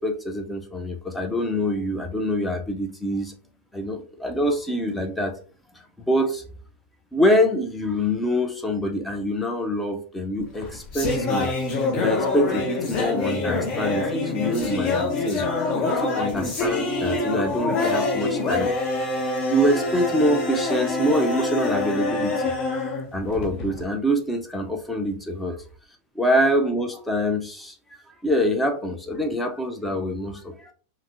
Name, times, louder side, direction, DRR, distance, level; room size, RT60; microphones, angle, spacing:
voice 1, 0.0-3.3 3.7-5.4 6.1-6.4 7.1-11.5 11.9-15.5 15.8-18.7 19.5-22.4 23.1-25.5 26.1-27.8 28.2-30.7, equal, 10° left, 0.6 m, -25 dB
sound 1, 10.4-23.8, left 3 dB, 40° left, 0.9 m, -25 dB
5.0 x 2.0 x 2.6 m
figure-of-eight pair, 90°, 0 cm